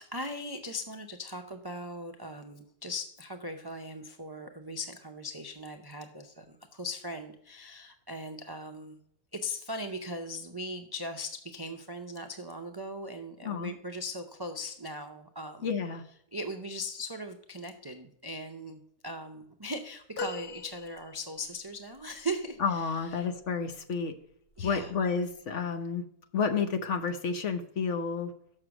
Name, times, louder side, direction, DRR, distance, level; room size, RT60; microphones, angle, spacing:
voice 1, 0.0-9.0 9.3-15.7 16.3-23.3 24.6-25.1, equal, 40° right, 6 dB, 0.3 m, -39 dB
voice 2, 15.6-16.0 22.6-24.1 24.6-26.0 26.3-28.3, left 5 dB, 55° left, 8 dB, 1.0 m, -30 dB
sound 1, 20.2-21.6 22.3-22.4, left 3 dB, 70° left, 1.6 m, -39 dB
6.7 x 6.5 x 6.0 m, 0.69 s
omnidirectional pair, 1.7 m